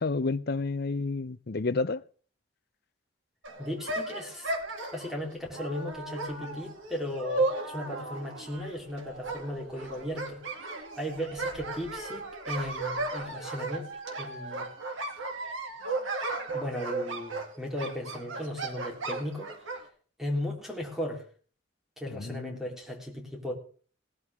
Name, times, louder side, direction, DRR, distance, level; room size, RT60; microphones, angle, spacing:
voice 1, 0.0-2.0 22.1-22.6, left 3 dB, 55° left, 0.6 m, -30 dB
sound 1, 3.4-19.9, right 2 dB, 90° right, 2.6 m, -35 dB
voice 2, 3.6-4.5 4.9-10.4 11.0-13.9 14.2-14.7 16.5-19.5 20.2-21.2 22.0-23.5, left 1 dB, ahead, 3.6 m, -36 dB
18.5 x 12.5 x 3.6 m
head